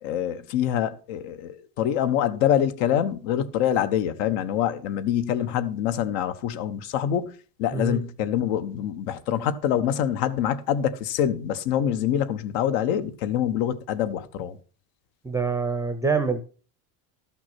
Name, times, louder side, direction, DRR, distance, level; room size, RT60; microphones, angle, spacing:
voice 1, 0.0-14.6, left 10 dB, 70° left, 1.2 m, -25 dB
voice 2, 15.2-16.4, right 4 dB, 5° right, 0.5 m, -25 dB
12.5 x 6.0 x 5.8 m
cardioid pair, 170°, 48 cm